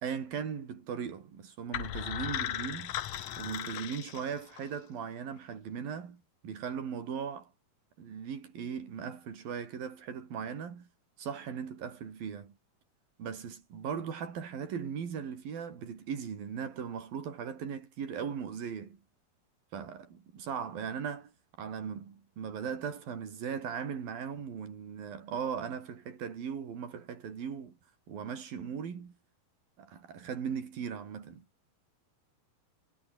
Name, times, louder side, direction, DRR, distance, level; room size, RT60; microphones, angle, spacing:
voice 1, 0.0-3.0 3.4-7.5 8.0-10.9 11.2-12.5 13.2-19.0 19.7-21.3 21.6-27.8 28.1-29.2 29.8-31.5, right 7 dB, 65° right, 5.4 m, -38 dB
sound 1, 1.7-4.8, left 11 dB, 60° left, 2.1 m, -37 dB
omnidirectional pair, 4.4 m